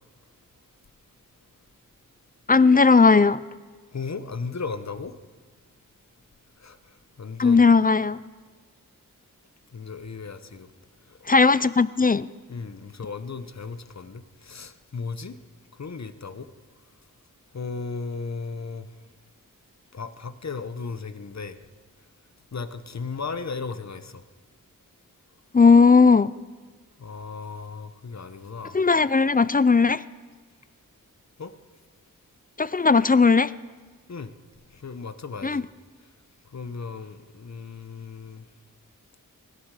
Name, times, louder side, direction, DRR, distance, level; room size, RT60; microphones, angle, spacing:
voice 1, 2.5-3.4 7.4-8.2 11.3-12.3 25.5-26.3 28.7-30.0 32.6-33.5 35.4-35.6, left 4 dB, 25° left, 18 dB, 0.4 m, -17 dB
voice 2, 3.9-5.2 6.6-7.6 9.7-10.7 11.1-11.4 12.5-15.4 15.7-16.5 17.5-19.0 19.9-21.6 22.5-24.2 27.0-28.8 31.4-31.5 34.1-34.3 34.7-35.7 36.0-36.1 36.4-38.5, left 4 dB, 50° left, 11 dB, 1.0 m, -36 dB
24.5 x 11.5 x 4.9 m, 1.4 s
wide cardioid pair, 60°, 34 cm